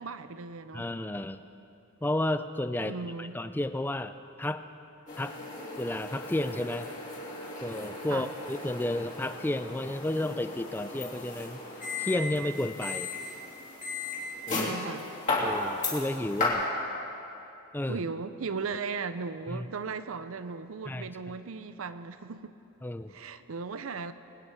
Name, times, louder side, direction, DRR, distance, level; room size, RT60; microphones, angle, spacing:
voice 1, 0.0-0.9 2.8-3.4 8.1-8.3 14.5-15.1 17.9-22.5 23.1-24.1, right 4 dB, 75° right, 12 dB, 0.6 m, -37 dB
voice 2, 0.7-1.4 2.0-4.1 4.4-4.6 5.2-5.3 5.8-6.9 7.6-11.6 12.0-13.1 14.5-14.7 15.4-16.7 17.7-18.0 19.5-19.7 20.9-21.1 22.8-23.1, left 1 dB, 10° left, 11 dB, 0.4 m, -32 dB
sound 1, 5.1-16.5, left 2 dB, 35° left, 3.4 m, -35 dB
23.0 x 9.5 x 4.7 m, 2.8 s
head